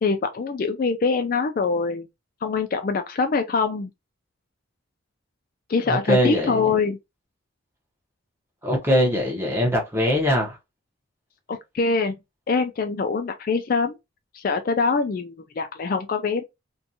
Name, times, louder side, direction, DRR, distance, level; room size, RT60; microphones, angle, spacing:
voice 1, 0.0-2.1 2.4-3.9 5.7-7.0 11.5-12.1 12.5-14.0 14.3-16.4, left 4 dB, 45° left, 0.3 m, -24 dB
voice 2, 5.8-6.8 8.6-10.6, equal, 10° right, 0.7 m, -22 dB
2.6 x 2.2 x 2.6 m
head